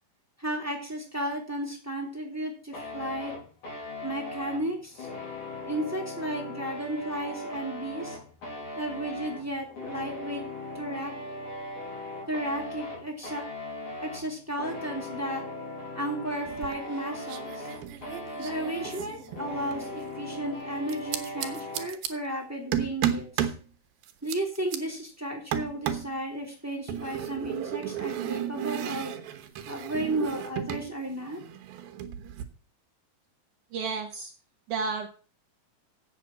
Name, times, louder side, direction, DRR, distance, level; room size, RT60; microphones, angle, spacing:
voice 1, 0.4-3.3 4.0-5.1 5.7-8.2 8.8-10.4 10.7-11.1 12.3-13.5 14.0-15.5 15.9-17.7 18.4-23.5 24.2-29.1 29.7-31.4, right 1 dB, 5° right, 1 dB, 2.2 m, -34 dB
sound 1, 2.7-21.9, left 2 dB, 55° left, 5.1 m, -39 dB
sound 2, 16.5-17.0 17.3-19.9 20.9-22.1 22.7-23.6 24.0-24.8 25.5-26.1 26.9-30.9 31.1-32.4, right 10 dB, 90° right, 2.9 m, -33 dB
voice 2, 33.7-34.3 34.7-35.1, right 4 dB, 70° right, 3 dB, 2.2 m, -31 dB
8.3 x 7.3 x 7.5 m, 0.37 s
omnidirectional pair, 4.1 m